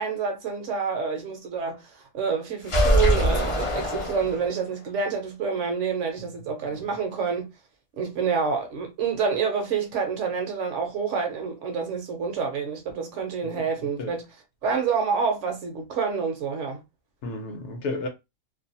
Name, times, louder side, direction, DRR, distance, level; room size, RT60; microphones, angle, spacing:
voice 1, 0.0-7.5 8.0-14.2 14.6-16.8, right 6 dB, 65° right, 0.9 m, -28 dB
sound 1, 2.6-4.7, equal, 40° left, 0.4 m, -23 dB
voice 2, 17.2-18.1, left 2 dB, 60° left, 0.9 m, -33 dB
2.6 x 2.2 x 2.7 m
omnidirectional pair, 1.5 m